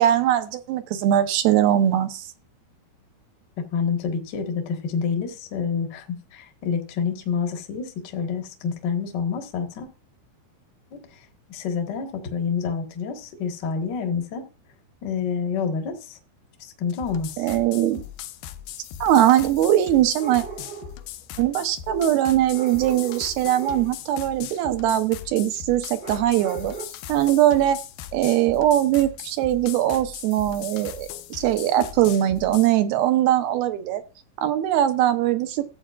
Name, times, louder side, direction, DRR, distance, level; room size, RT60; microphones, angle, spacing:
voice 1, 0.0-2.2 17.4-18.0 19.0-20.4 21.4-26.8 27.1-27.8 28.1-34.0 34.4-35.6, right 12 dB, 80° right, 2.8 m, -21 dB
voice 2, 3.7-9.9 10.9-11.0 11.5-14.4 15.0-16.2 16.8-17.4, left 6 dB, 55° left, 1.2 m, -28 dB
sound 1, 16.9-32.7, left 12 dB, 80° left, 2.5 m, -39 dB
sound 2, 17.9-18.0 20.1-21.1 21.8-23.9 26.0-26.9, right 7 dB, 40° right, 0.8 m, -38 dB
14.0 x 8.3 x 2.4 m
omnidirectional pair, 4.4 m